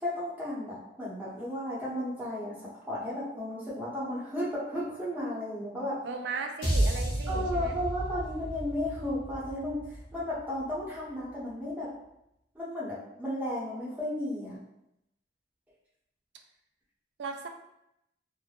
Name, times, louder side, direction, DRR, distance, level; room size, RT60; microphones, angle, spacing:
voice 1, 0.0-6.0 7.3-9.8 10.1-11.9 12.5-14.6, left 1 dB, 10° right, -8 dB, 0.8 m, -34 dB
voice 2, 6.0-7.8 17.2-17.5, right 4 dB, 70° right, 5 dB, 0.3 m, -37 dB
sound 1, 6.6-11.0, right 1 dB, 50° left, 1.1 m, -32 dB
3.2 x 2.1 x 2.4 m, 0.83 s
head